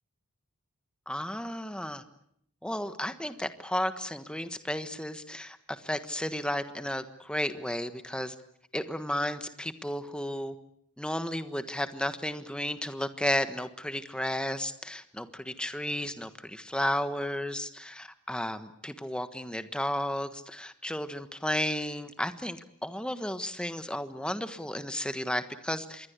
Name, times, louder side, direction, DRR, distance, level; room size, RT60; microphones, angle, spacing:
voice 1, 1.1-2.0 2.6-5.6 5.8-8.3 8.7-10.5 11.0-26.1, left 1 dB, 5° left, 10 dB, 1.3 m, -33 dB
26.5 x 21.5 x 8.3 m, 0.70 s
head